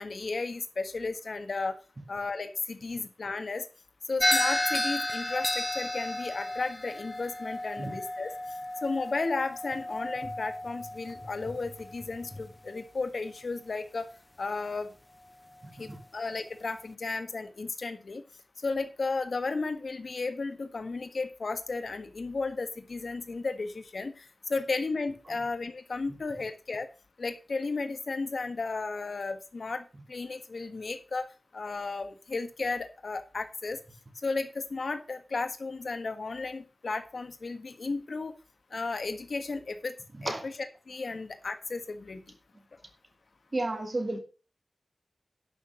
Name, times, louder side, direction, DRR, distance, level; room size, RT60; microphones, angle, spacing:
voice 1, 0.0-1.8 2.1-3.7 4.1-8.3 8.8-14.1 14.4-14.9 15.8-18.2 18.6-26.9 27.2-33.8 34.2-38.3 38.7-39.9 40.2-40.5 40.9-42.2, left 3 dB, 65° left, 8 dB, 1.5 m, -34 dB
sound 1, 4.2-12.6, left 1 dB, 20° left, 0.7 m, -32 dB
voice 2, 15.6-16.0 25.3-25.4 40.1-40.5 43.5-44.2, right 2 dB, 35° right, 4 dB, 2.7 m, -33 dB
11.5 x 6.2 x 6.1 m, 0.36 s
wide cardioid pair, 95°, 0 cm